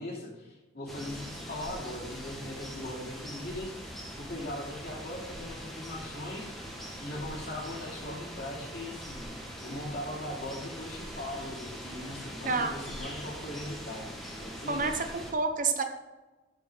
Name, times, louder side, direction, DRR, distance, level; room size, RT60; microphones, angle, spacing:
voice 1, 0.0-3.9 4.2-6.6 7.0-9.3 9.6-14.1 14.4-14.8, left 1 dB, 55° left, -2 dB, 2.8 m, -40 dB
sound 1, 0.9-15.3, equal, ahead, 1.6 m, -42 dB
voice 2, 14.7-15.8, right 4 dB, 45° right, 6 dB, 0.9 m, -29 dB
13.5 x 5.5 x 3.9 m, 1.1 s
head